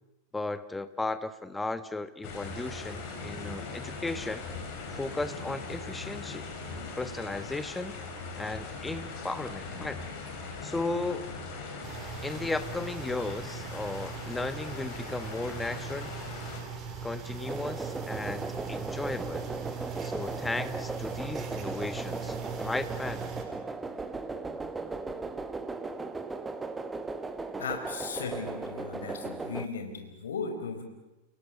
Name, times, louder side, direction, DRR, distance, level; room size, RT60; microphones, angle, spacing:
voice 1, 0.3-4.5 4.9-6.5 7.0-8.0 8.4-10.0 10.6-11.3 12.2-16.1 17.0-19.5 20.0-23.3, left 2 dB, 10° left, 12 dB, 1.3 m, -35 dB
sound 1, 2.2-16.6, left 4 dB, 45° left, 4.9 m, -40 dB
sound 2, 11.8-23.4, right 5 dB, 30° right, 4.5 m, -40 dB
sound 3, 17.4-29.7, right 3 dB, 10° right, 1.5 m, -37 dB
voice 2, 27.6-30.8, left 5 dB, 65° left, 6 dB, 4.6 m, -36 dB
30.0 x 18.0 x 8.6 m, 1.0 s
figure-of-eight pair, 90°, 0 cm